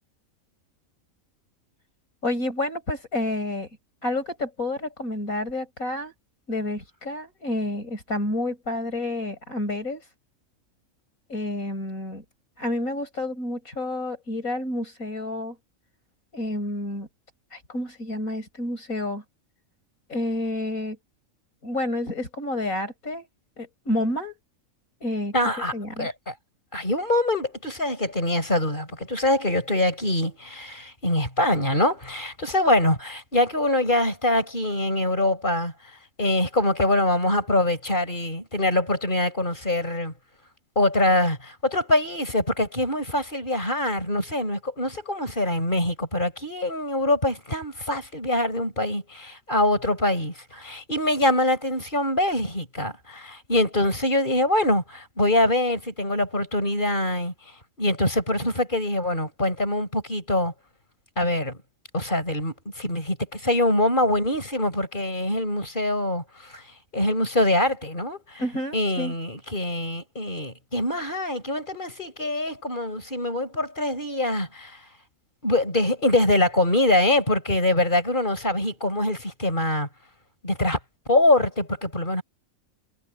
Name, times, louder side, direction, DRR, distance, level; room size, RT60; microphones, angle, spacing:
voice 1, 2.2-6.1 6.5-10.1 11.3-12.3 12.6-15.6 16.3-17.1 17.5-19.2 20.1-21.0 21.6-23.3 23.6-24.4 25.0-26.1 68.4-69.1, left 1 dB, 85° left, 7.2 m, -29 dB
voice 2, 25.3-25.7 26.0-26.1 26.7-40.1 40.8-57.3 57.8-60.5 61.2-61.6 61.9-66.6 66.9-68.4 68.7-74.8 75.4-79.9 80.4-80.8 81.1-82.2, left 1 dB, 35° left, 7.2 m, -24 dB
omnidirectional pair, 1.4 m